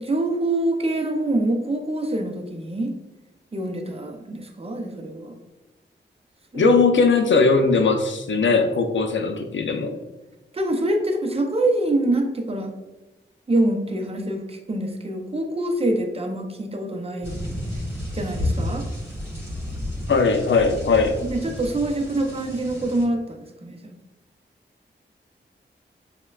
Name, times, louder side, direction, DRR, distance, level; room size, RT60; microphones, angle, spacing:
voice 1, 0.0-2.9 3.5-5.4 6.5-6.7 9.9-10.0 10.5-12.7 13.5-17.3 18.1-18.9 21.2-23.9, right 1 dB, 30° right, 4 dB, 0.5 m, -25 dB
voice 2, 6.5-10.0 20.1-21.2, left 4 dB, 75° left, 5 dB, 0.5 m, -19 dB
sound 1, 17.2-23.0, left 1 dB, 15° right, 1.5 m, -31 dB
5.3 x 2.2 x 2.3 m, 1.1 s
wide cardioid pair, 60°, 20 cm